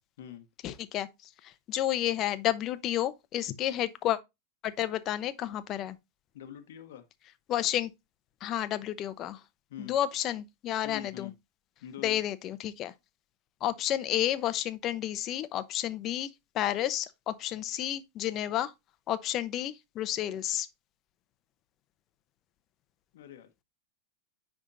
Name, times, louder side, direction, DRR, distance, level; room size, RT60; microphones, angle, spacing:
voice 1, 0.6-1.1 1.4-4.2 4.6-6.0 7.5-7.9 8.4-9.4 9.8-11.3 12.0-12.9 13.6-16.3 16.5-18.7 19.1-20.7, left 12 dB, 40° left, 0.8 m, -31 dB
voice 2, 6.3-7.1 9.7-10.0 10.8-11.3 11.8-12.2 23.1-23.5, left 10 dB, 75° left, 1.1 m, -44 dB
10.0 x 3.6 x 2.7 m
hypercardioid pair, 105°, 0 cm